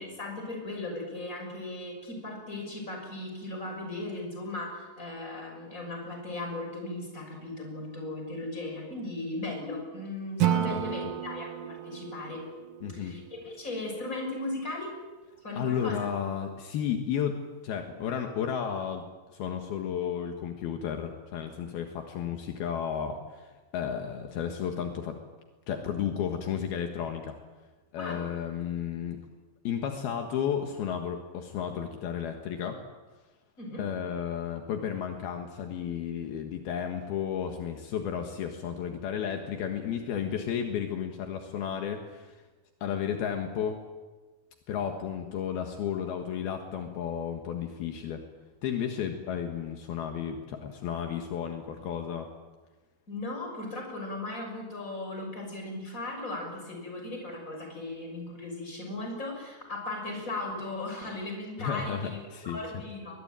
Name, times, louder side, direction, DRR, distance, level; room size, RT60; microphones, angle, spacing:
voice 1, 0.0-12.5 12.9-14.9 15.4-16.1 28.0-28.3 33.6-33.9 53.1-62.2 62.4-63.2, left 2 dB, 20° left, 2 dB, 6.6 m, -37 dB
Acoustic guitar / Strum, 10.4-13.6, right 11 dB, 70° right, 2.7 m, -31 dB
voice 2, 10.7-11.1 12.8-13.2 15.6-19.0 19.3-25.2 25.7-27.3 27.9-29.2 29.6-32.8 33.8-42.3 42.8-43.8 44.7-48.2 48.6-52.3 61.6-62.8, left 8 dB, 75° left, 4 dB, 3.4 m, -33 dB
22.5 x 21.5 x 9.0 m, 1.3 s
omnidirectional pair, 4.6 m